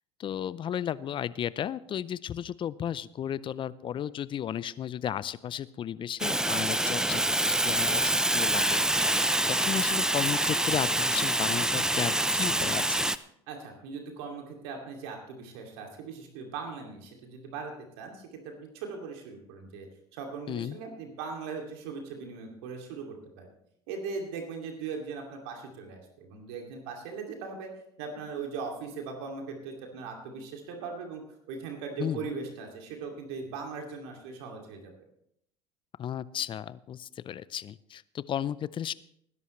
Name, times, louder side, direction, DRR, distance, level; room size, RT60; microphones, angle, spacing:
voice 1, 0.2-13.1 20.5-20.8 32.0-32.2 36.0-38.9, left 9 dB, 40° left, 18 dB, 0.6 m, -34 dB
Fire, 6.2-13.2, right 1 dB, 5° right, 0.6 m, -26 dB
voice 2, 13.5-19.9 20.1-23.5 23.9-27.7 28.0-31.2 31.5-34.9, right 5 dB, 75° right, 2 dB, 2.6 m, -39 dB
19.5 x 10.5 x 3.2 m, 0.72 s
hypercardioid pair, 80°, 14 cm